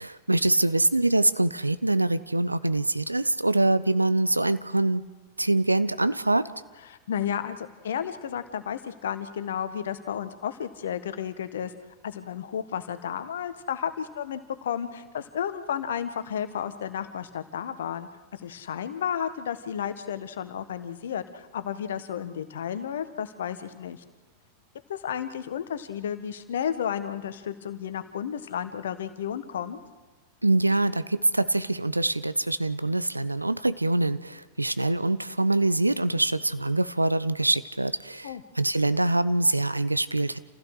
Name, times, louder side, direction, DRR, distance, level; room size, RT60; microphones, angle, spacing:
voice 1, 0.0-5.0 5.4-6.5 30.4-40.4, right 2 dB, 85° right, 14 dB, 0.7 m, -24 dB
voice 2, 6.9-11.7 12.0-24.0 24.9-29.8 38.2-38.4, left 8 dB, 60° left, 11 dB, 1.3 m, -32 dB
28.5 x 15.5 x 6.6 m, 1.2 s
figure-of-eight pair, 90°, 0 cm